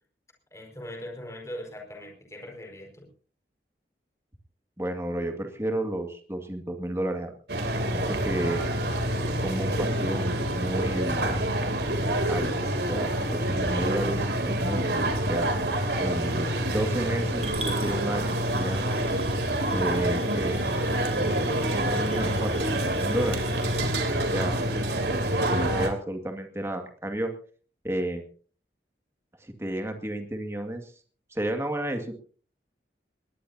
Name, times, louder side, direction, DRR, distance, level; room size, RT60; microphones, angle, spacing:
voice 1, 0.5-3.1, left 1 dB, 15° left, 0 dB, 5.1 m, -40 dB
voice 2, 4.8-8.6 9.4-11.4 12.3-14.8 15.3-15.5 16.0-18.9 19.7-20.6 21.1-23.4 24.3-24.6 25.4-27.3 27.8-28.3 29.4-30.9 31.3-32.1, right 1 dB, 15° right, 4 dB, 2.1 m, -32 dB
sound 1, 7.5-25.9, right 1 dB, 75° right, 3.1 m, -27 dB
Coin (dropping) / Glass, 17.4-23.8, right 2 dB, 40° right, 5.5 m, -43 dB
20.5 x 19.5 x 2.8 m, 0.43 s
head